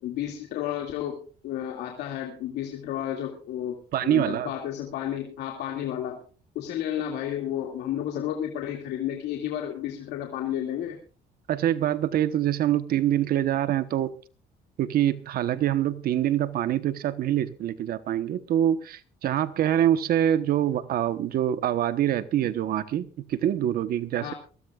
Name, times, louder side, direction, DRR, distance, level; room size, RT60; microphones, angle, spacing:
voice 1, 0.0-6.2 6.5-11.0 24.2-24.3, left 11 dB, 80° left, 2.4 m, -32 dB
voice 2, 3.9-4.5 11.5-14.1 14.8-24.3, right 11 dB, 65° right, 1.1 m, -25 dB
22.5 x 16.0 x 2.4 m
cardioid pair, 110°, 17 cm